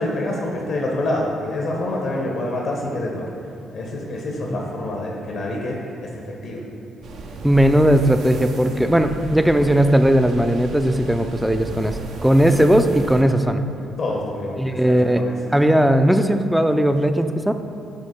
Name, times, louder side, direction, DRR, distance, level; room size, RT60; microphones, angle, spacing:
voice 1, 0.0-3.3 3.7-6.6 7.6-7.7 8.7-9.2 14.0-15.4, left 1 dB, 70° left, -1 dB, 0.9 m, -27 dB
sound 1, 7.0-13.2, right 3 dB, 75° right, 0.6 m, -35 dB
voice 2, 7.4-13.6 14.6-15.2 15.5-17.5, right 1 dB, 5° right, 8 dB, 0.3 m, -17 dB
7.7 x 2.9 x 4.3 m, 2.5 s
cardioid pair, 90°, 0 cm